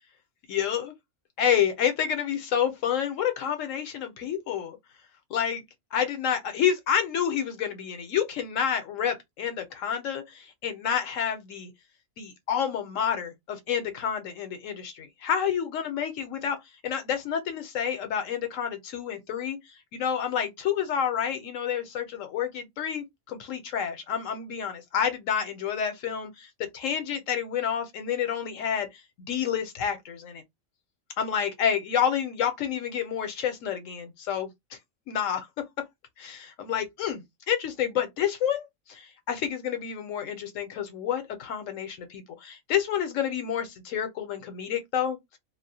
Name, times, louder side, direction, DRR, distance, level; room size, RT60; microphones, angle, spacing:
voice 1, 0.5-0.9 1.4-4.8 5.3-5.6 5.9-11.7 12.2-16.6 16.8-19.6 19.9-28.9 29.3-30.4 31.2-34.5 35.1-35.5 36.2-45.2, left 8 dB, 75° left, 1.0 m, -29 dB
2.4 x 2.1 x 2.7 m
omnidirectional pair, 1.4 m